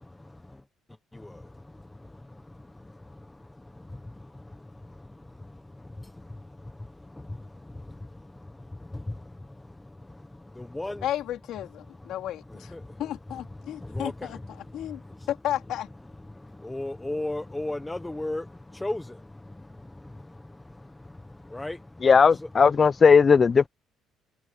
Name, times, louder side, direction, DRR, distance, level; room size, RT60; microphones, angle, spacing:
voice 1, 0.0-11.1 11.8-14.4 16.2-22.5, left 2 dB, 10° left, 0.9 m, -39 dB
voice 2, 11.0-12.7 13.0-14.4 14.7-15.0 15.4-15.9, left 12 dB, 65° left, 3.0 m, -33 dB
voice 3, 22.0-23.7, left 5 dB, 25° left, 0.3 m, -17 dB
cardioid pair, 155°, 0 cm